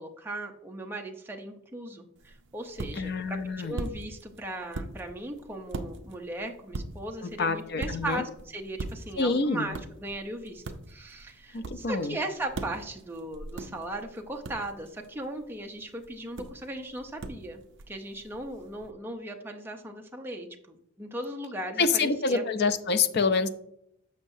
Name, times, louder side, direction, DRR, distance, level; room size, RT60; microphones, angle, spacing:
voice 1, 0.0-17.6 17.9-22.4, right 1 dB, 10° right, 2 dB, 0.7 m, -38 dB
sound 1, 2.2-18.9, right 2 dB, 55° right, 0.5 m, -42 dB
voice 2, 2.9-3.8 7.2-8.2 9.2-9.8 11.5-12.2 21.8-23.5, left 4 dB, 50° left, 9 dB, 0.5 m, -27 dB
7.3 x 6.5 x 2.7 m, 0.74 s
head